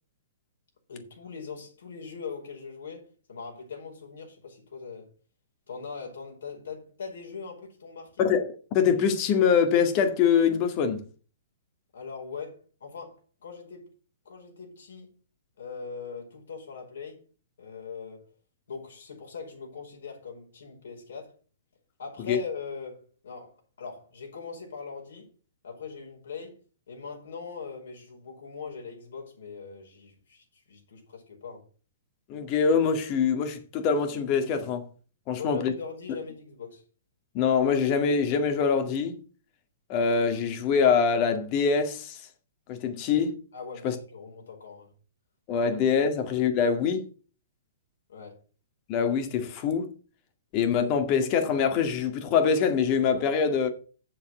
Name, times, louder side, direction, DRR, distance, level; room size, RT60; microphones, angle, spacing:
voice 1, 0.9-5.1 5.7-8.2 11.9-13.9 14.2-15.2 15.6-17.2 17.6-18.3 18.7-21.3 22.0-25.3 25.6-26.6 26.9-31.6 35.3-36.8 43.5-44.9 48.1-48.3, left 5 dB, 70° left, 5.1 m, -41 dB
voice 2, 8.7-11.0 22.3-22.4 32.3-34.9 35.3-35.7 37.3-39.2 39.9-42.2 42.7-43.3 43.8-44.0 45.5-47.0 48.9-49.9 50.5-53.7, left 6 dB, 35° left, 2.1 m, -24 dB
7.7 x 7.1 x 7.1 m
hypercardioid pair, 120°, 0 cm